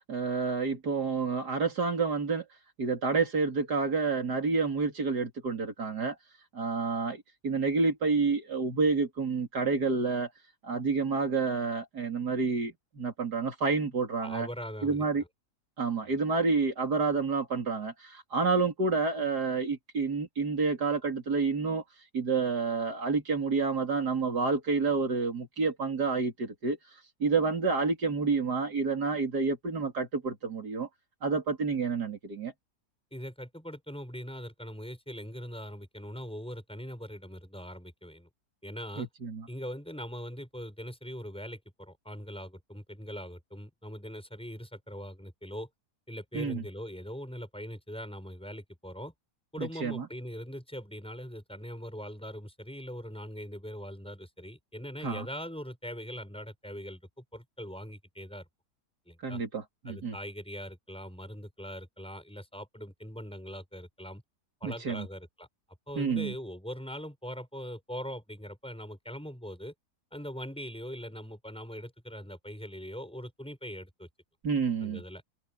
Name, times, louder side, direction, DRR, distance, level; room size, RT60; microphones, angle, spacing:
voice 1, 0.1-2.4 2.8-6.2 6.5-10.3 10.6-14.5 14.8-15.2 15.8-21.8 22.1-26.8 27.2-30.9 31.2-32.5 39.0-39.5 46.3-46.7 49.6-50.1 55.0-55.3 59.2-60.2 64.6-65.1 66.0-66.3 74.4-75.0, right 4 dB, 80° right, 3.7 m, -29 dB
voice 2, 14.2-15.0 16.0-16.1 33.1-38.3 38.6-39.1 39.5-45.7 46.1-49.1 49.5-58.5 59.1-59.4 59.8-64.2 64.6-65.5 65.9-69.7 70.1-74.1 74.8-75.2, equal, 5° left, 6.7 m, -41 dB
open air
omnidirectional pair, 1.7 m